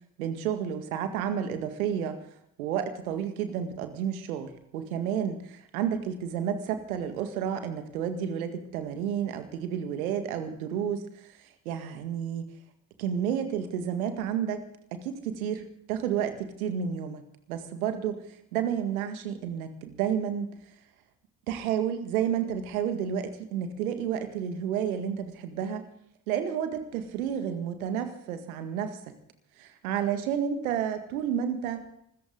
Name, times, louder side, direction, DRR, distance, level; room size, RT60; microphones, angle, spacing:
voice 1, 0.2-2.2 2.6-11.3 11.7-12.4 13.0-14.6 14.9-20.6 21.5-25.9 26.3-29.0 29.6-31.8, right 8 dB, 80° right, 8 dB, 1.9 m, -31 dB
25.0 x 14.0 x 3.8 m, 0.72 s
figure-of-eight pair, 45°, 42 cm